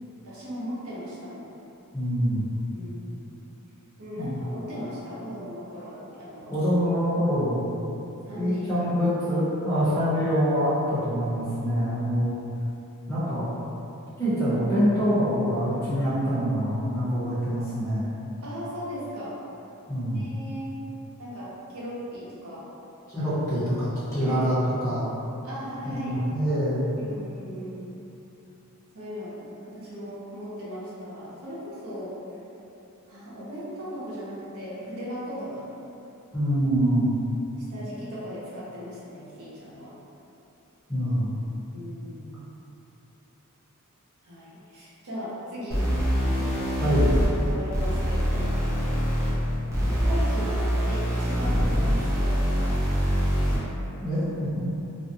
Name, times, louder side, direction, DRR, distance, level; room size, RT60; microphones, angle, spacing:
voice 1, 0.2-1.5 2.7-3.3 4.0-6.5 8.3-8.8 18.4-19.4 20.1-20.7 21.2-22.6 24.2-24.4 25.4-26.1 27.0-27.9 28.9-32.2 33.1-35.7 37.7-39.9 41.7-42.4 44.2-45.8 46.3-46.7 47.4-48.5 50.0-52.7, equal, 70° right, -9 dB, 0.7 m, -37 dB
voice 2, 1.9-2.5 4.2-4.4 6.5-7.6 8.4-12.3 13.1-13.5 14.2-18.1 19.9-20.3 23.1-24.5 24.8-25.0 25.9-26.9 36.3-37.1 40.9-41.3 46.8-47.1 54.0-54.7, equal, 15° left, -13 dB, 0.9 m, -25 dB
sound 1, 45.7-53.7, equal, 15° right, 0.6 m, -24 dB
2.5 x 2.2 x 2.7 m, 2.9 s
head